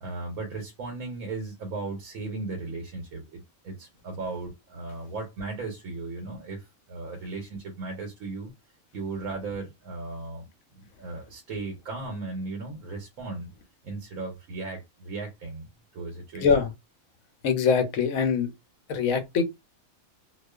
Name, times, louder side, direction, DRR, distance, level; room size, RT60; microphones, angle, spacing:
voice 1, 0.0-8.5 8.9-10.5 10.7-13.5 13.8-15.7 15.9-16.5, right 3 dB, 80° right, 1.1 m, -36 dB
voice 2, 17.4-18.5 18.9-19.4, left 6 dB, 75° left, 1.0 m, -23 dB
2.4 x 2.3 x 2.2 m
omnidirectional pair, 1.5 m